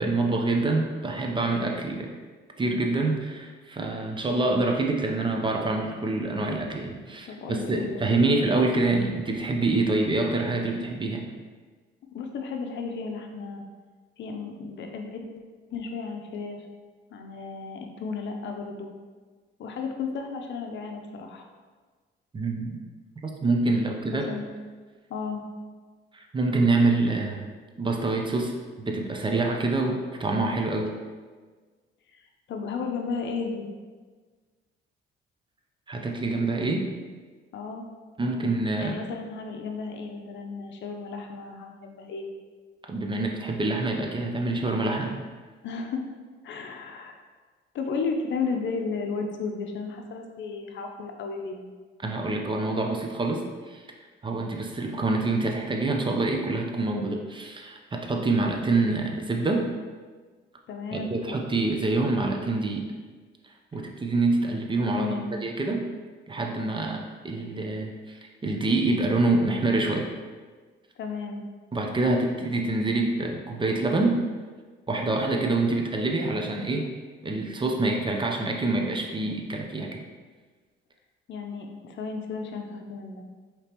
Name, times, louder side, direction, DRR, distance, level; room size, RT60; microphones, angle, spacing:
voice 1, 0.0-2.1 2.6-11.3 22.3-22.8 23.2-24.3 26.1-27.5 27.8-30.9 35.9-36.9 38.2-38.9 42.9-45.1 52.0-53.8 54.2-59.6 60.9-62.9 63.7-65.1 65.4-65.9 66.3-70.1 71.7-74.2 74.9-76.9 77.2-80.0, right 2 dB, 25° right, 2 dB, 0.5 m, -26 dB
voice 2, 7.3-8.3 12.1-13.6 14.2-15.2 15.7-16.6 17.1-18.9 19.6-21.5 24.1-24.5 25.1-25.4 32.1-33.7 37.5-37.9 38.8-42.3 45.6-46.0 46.4-47.1 47.7-51.7 60.7-61.1 63.7-63.9 65.0-65.3 71.0-71.4 81.3-83.2, left 4 dB, 65° left, 3 dB, 0.6 m, -34 dB
5.0 x 2.9 x 2.9 m, 1.4 s
cardioid pair, 90°, 20 cm